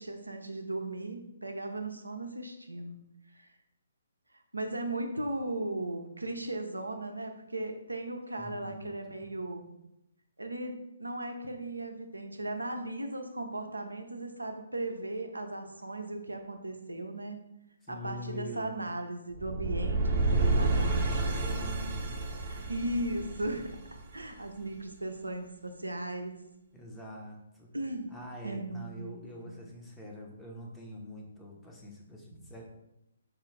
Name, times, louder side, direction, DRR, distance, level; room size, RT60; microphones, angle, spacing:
voice 1, 0.0-3.0 3.3-3.5 4.5-9.7 10.4-17.4 17.9-21.4 22.4-23.6 24.1-26.4 27.7-28.1 28.4-29.5, right 1 dB, 90° right, 5 dB, 0.5 m, -37 dB
voice 2, 8.4-9.4 17.8-18.9 19.6-20.9 21.2-22.2 26.7-27.7 28.1-32.6, equal, 10° left, -1 dB, 0.6 m, -44 dB
sound 1, 19.3-24.4, right 2 dB, 30° right, 0.6 m, -30 dB
4.6 x 2.4 x 3.1 m, 0.84 s
figure-of-eight pair, 135°, 0 cm